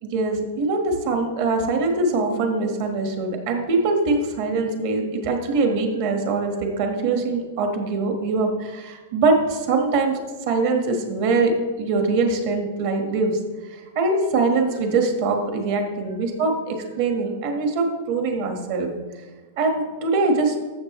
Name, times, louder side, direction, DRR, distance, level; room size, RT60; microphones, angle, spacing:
voice 1, 0.0-10.2 10.5-11.5 11.8-13.4 13.9-18.9 19.6-20.5, right 3 dB, 45° right, 3 dB, 1.4 m, -23 dB
13.5 x 7.2 x 3.1 m, 1.3 s
supercardioid pair, 165°, 0 cm